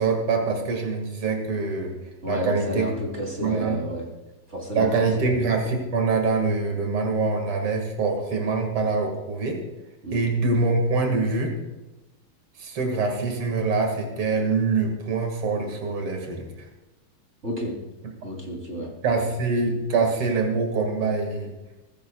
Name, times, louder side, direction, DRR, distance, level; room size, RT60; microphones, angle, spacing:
voice 1, 0.0-1.9 2.3-2.9 3.4-3.8 4.7-9.6 10.1-11.5 12.6-16.7 19.0-21.5, right 4 dB, 80° right, 3 dB, 2.9 m, -24 dB
voice 2, 2.2-4.0 4.5-4.9 5.2-5.3 10.0-10.2 17.4-17.7 18.2-18.9, equal, 30° right, -1 dB, 3.5 m, -31 dB
23.0 x 13.5 x 2.3 m, 1.0 s
omnidirectional pair, 2.4 m